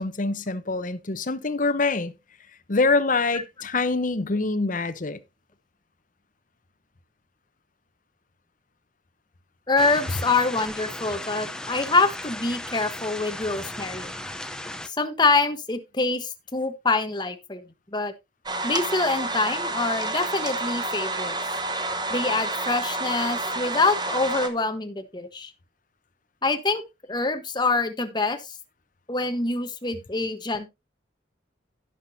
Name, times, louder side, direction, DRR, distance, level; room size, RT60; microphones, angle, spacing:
voice 1, 0.0-2.1 2.7-5.2, left 3 dB, 45° left, 0.9 m, -25 dB
voice 2, 9.7-14.1 14.8-17.6 17.9-18.1 18.6-21.3 22.1-25.5 26.4-26.8 27.1-28.5 29.1-30.7, left 3 dB, 25° left, 1.1 m, -25 dB
sound 1, 9.8-14.9, left 1 dB, 5° left, 0.7 m, -36 dB
sound 2, 18.5-24.5, right 2 dB, 20° right, 1.1 m, -29 dB
16.5 x 6.0 x 2.7 m
head